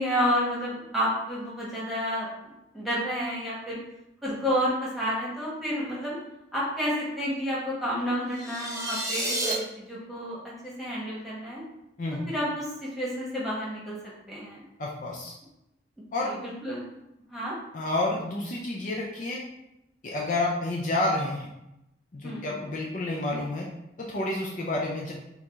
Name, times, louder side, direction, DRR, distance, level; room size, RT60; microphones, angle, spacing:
voice 1, 0.0-3.8 4.2-6.2 6.5-11.6 12.3-14.0 14.3-14.6 16.0-16.9 17.3-17.6 22.2-22.5, equal, ahead, -7 dB, 1.3 m, -30 dB
sound 1, 8.3-9.5, right 1 dB, 15° right, 0.8 m, -30 dB
voice 2, 14.8-15.3 16.1-16.3 17.7-19.4 20.0-21.5 22.1-23.7 24.0-25.1, left 2 dB, 45° left, -3 dB, 0.5 m, -29 dB
4.6 x 2.6 x 3.5 m, 0.88 s
head